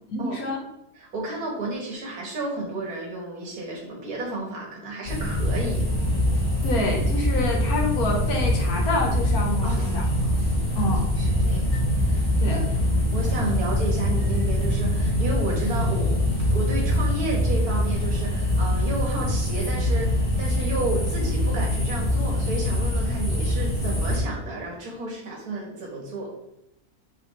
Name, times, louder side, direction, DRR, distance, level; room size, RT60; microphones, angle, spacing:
voice 1, 0.1-0.6 6.6-10.1 10.8-11.0 12.4-12.6, left 2 dB, 75° left, 1 dB, 1.8 m, -27 dB
voice 2, 1.0-5.9 9.6-11.7 12.1-12.7 13.1-26.3, right 2 dB, 85° right, -1 dB, 2.2 m, -32 dB
sound 1, 5.1-24.2, left 1 dB, 35° left, 2.7 m, -24 dB
5.9 x 5.4 x 3.3 m, 0.82 s
omnidirectional pair, 1.6 m